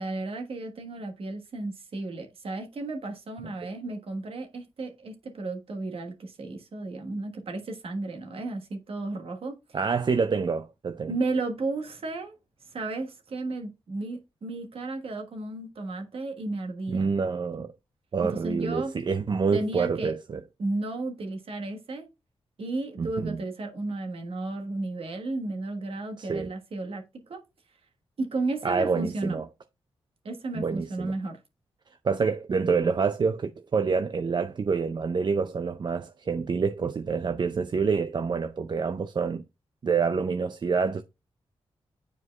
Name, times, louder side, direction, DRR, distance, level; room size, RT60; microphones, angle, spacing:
voice 1, 0.0-9.8 11.1-12.3 12.7-17.1 18.2-18.9 19.5-20.1 20.6-22.1 22.6-27.4 28.2-29.4 30.2-31.4, right 2 dB, 65° right, 1.4 m, -33 dB
voice 2, 9.7-11.1 16.9-17.7 18.1-20.4 23.0-23.4 26.2-26.5 28.6-29.4 30.5-31.1 32.0-39.4 39.8-41.0, right 5 dB, 45° right, 0.5 m, -27 dB
9.5 x 4.6 x 2.3 m
cardioid pair, 65°, 11 cm